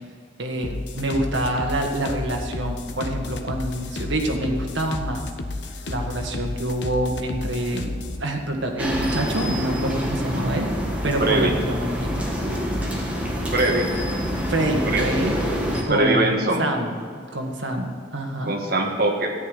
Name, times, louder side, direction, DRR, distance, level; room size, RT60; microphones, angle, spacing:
voice 1, 0.4-5.2 5.9-10.7 11.0-12.3 14.5-15.3 15.9-17.0 17.3-18.6, right 1 dB, 75° right, 2 dB, 1.7 m, -26 dB
sound 1, 0.6-8.2, left 2 dB, 65° left, 1.0 m, -32 dB
sound 2, 8.8-15.8, equal, 5° right, 1.6 m, -26 dB
voice 2, 11.2-11.6 13.5-13.9 14.9-15.1 15.9-16.7 18.5-19.3, right 2 dB, 50° right, 1 dB, 1.7 m, -22 dB
13.5 x 9.9 x 5.3 m, 2.1 s
head